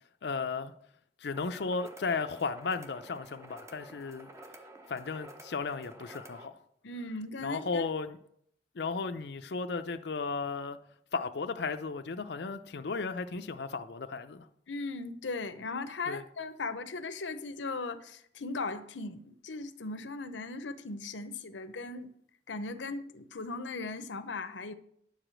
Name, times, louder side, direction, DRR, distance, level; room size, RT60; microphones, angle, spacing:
voice 1, 0.2-0.7 1.2-4.3 4.9-6.6 7.4-8.2 8.8-10.8 11.1-14.5 16.1-16.2, left 4 dB, 65° left, 0.5 m, -35 dB
sound 1, 1.3-6.5, right 1 dB, 15° right, 0.7 m, -51 dB
voice 2, 6.8-7.9 14.7-22.1 22.5-24.7, left 3 dB, 90° left, 0.8 m, -38 dB
10.5 x 4.9 x 7.6 m
head